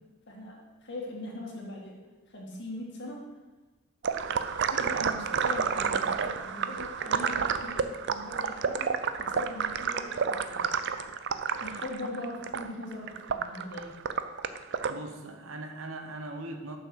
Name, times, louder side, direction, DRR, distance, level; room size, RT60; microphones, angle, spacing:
voice 1, 0.3-2.0 2.3-3.2 4.7-8.9 9.2-10.8 11.6-14.0, left 1 dB, 55° left, -1 dB, 1.8 m, -41 dB
sound 1, 4.0-14.9, right 6 dB, 55° right, 0.4 m, -30 dB
voice 2, 14.9-16.8, right 2 dB, 70° right, 5 dB, 1.0 m, -40 dB
6.8 x 6.1 x 6.3 m, 1.2 s
head